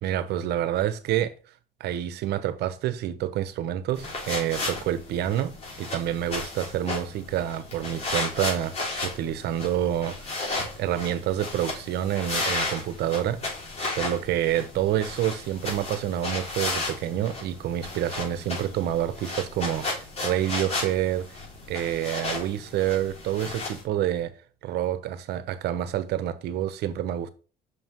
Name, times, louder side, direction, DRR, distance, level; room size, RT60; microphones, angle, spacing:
voice 1, 0.0-1.3 1.8-8.8 9.0-10.3 10.8-13.5 14.0-21.4 21.7-24.3 24.6-27.3, right 11 dB, 75° right, 0.8 m, -28 dB
sound 1, 4.0-23.8, left 2 dB, 40° left, 3.4 m, -34 dB
6.2 x 5.5 x 3.0 m
cardioid pair, 110°, 17 cm